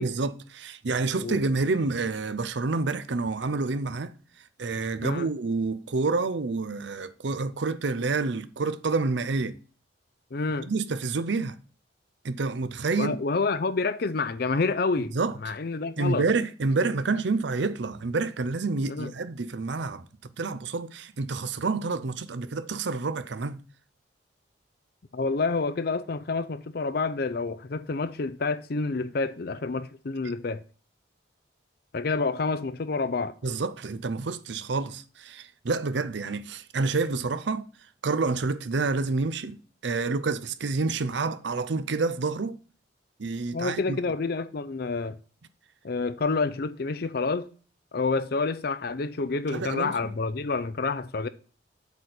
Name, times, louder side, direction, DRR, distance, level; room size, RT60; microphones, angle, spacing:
voice 1, 0.0-4.1 4.6-9.6 10.6-11.6 12.2-13.2 15.1-15.5 16.0-20.1 20.4-23.6 33.4-37.6 38.0-39.6 39.8-42.6 43.2-44.0 49.5-49.9, right 3 dB, 65° right, 0.6 m, -28 dB
voice 2, 10.3-10.7 13.0-15.1 15.4-16.2 18.9-19.1 25.1-30.6 31.9-33.3 43.5-45.2 45.8-47.5 47.9-51.3, left 3 dB, 55° left, 0.5 m, -28 dB
8.2 x 4.3 x 6.5 m
head